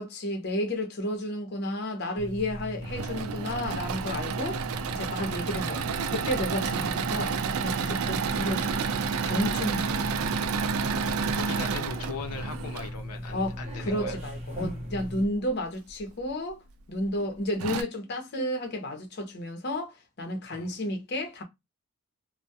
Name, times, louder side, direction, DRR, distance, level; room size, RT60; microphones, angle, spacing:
voice 1, 0.0-4.6 4.9-5.8 6.1-10.1 13.3-16.6 16.9-21.4, left 1 dB, 50° left, 0.7 m, -32 dB
sound 1, 2.2-15.2, equal, 30° right, 0.7 m, -38 dB
Engine / Mechanisms, 2.6-12.9 14.5-15.3 15.9-16.0 16.3-16.4 17.2-17.3 17.6-17.8, right 6 dB, 75° right, 0.3 m, -30 dB
voice 2, 11.2-14.2 20.5-20.7, left 5 dB, 90° left, 0.5 m, -39 dB
2.2 x 2.1 x 2.6 m
head